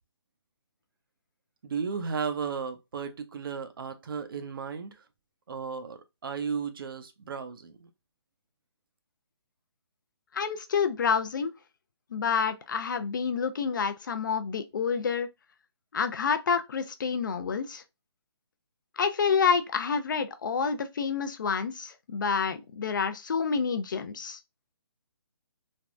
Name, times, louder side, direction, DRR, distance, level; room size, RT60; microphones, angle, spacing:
voice 1, 1.6-5.0 5.5-7.9, right 6 dB, 50° right, 0.5 m, -34 dB
voice 2, 10.3-11.5 12.1-15.3 15.9-17.8 19.0-24.4, left 6 dB, 45° left, 0.4 m, -28 dB
3.4 x 2.0 x 2.4 m
hypercardioid pair, 165°, 14 cm